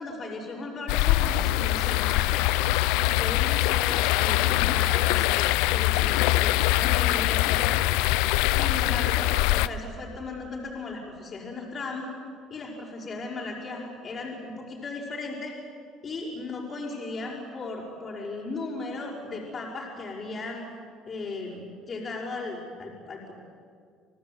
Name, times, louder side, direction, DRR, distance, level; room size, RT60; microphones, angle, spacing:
voice 1, 0.0-2.5 3.0-7.8 8.5-12.1 12.5-15.5 16.0-20.6 21.1-23.3, left 3 dB, 40° left, -4 dB, 5.5 m, -36 dB
sound 1, 0.9-9.7, left 17 dB, 85° left, 0.6 m, -23 dB
28.5 x 18.0 x 9.6 m, 2.3 s
supercardioid pair, 95°, 0 cm